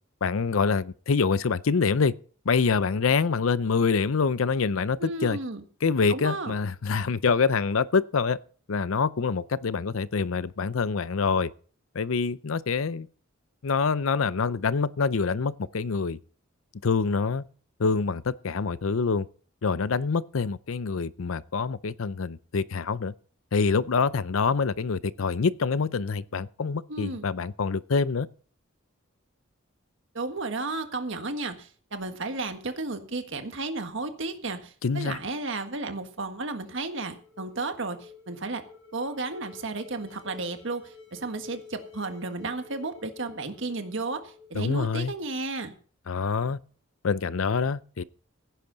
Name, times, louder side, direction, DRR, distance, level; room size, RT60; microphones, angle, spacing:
voice 1, 0.2-2.1 2.5-5.4 5.8-8.4 8.7-11.5 11.9-13.1 13.6-16.2 16.8-17.4 17.8-19.3 19.6-23.1 23.5-28.3 34.8-35.2 44.5-45.1 46.1-46.6 47.0-48.0, left 5 dB, 80° left, 0.6 m, -26 dB
voice 2, 5.0-5.6 6.1-6.5 26.9-27.3 30.1-38.6 38.9-45.7, right 3 dB, 65° right, 1.6 m, -33 dB
sound 1, 36.1-45.3, left 5 dB, 65° left, 6.9 m, -51 dB
16.0 x 10.0 x 4.0 m
head